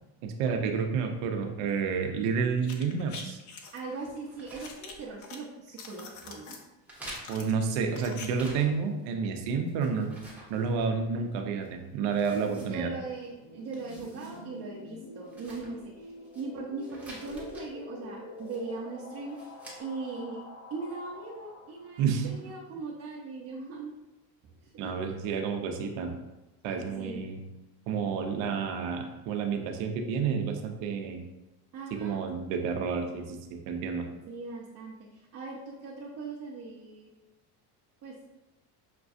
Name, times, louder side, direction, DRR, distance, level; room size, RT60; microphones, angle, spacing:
voice 1, 0.2-3.4 7.3-10.1 10.5-12.9 22.0-22.3 24.8-26.1 26.6-27.4 27.9-31.2 31.9-34.1, right 5 dB, 70° right, 5 dB, 0.8 m, -30 dB
sound 1, 2.6-3.8 4.6-5.4 5.7-6.6 7.0-8.3 8.5-8.6, left 5 dB, 40° left, 0.6 m, -45 dB
sound 2, 3.6-5.5 5.8-6.3 6.8-9.0 9.3-11.2 11.6-11.7 12.1-13.3 13.6-14.4 14.7-14.8 15.2-16.4 16.8-17.7 18.4-18.8 19.3-19.8, right 1 dB, 5° right, 0.9 m, -50 dB
voice 2, 3.7-6.6 12.6-19.4 19.8-20.4 20.7-23.9 24.6-24.9 26.8-27.2 31.7-32.2 34.3-37.1 38.0-38.1, right 3 dB, 35° right, -6 dB, 0.7 m, -40 dB
sound 3, 13.0-22.5, left 2 dB, 75° left, 1.1 m, -47 dB
5.9 x 2.3 x 2.6 m, 1.0 s
supercardioid pair, 115°, 47 cm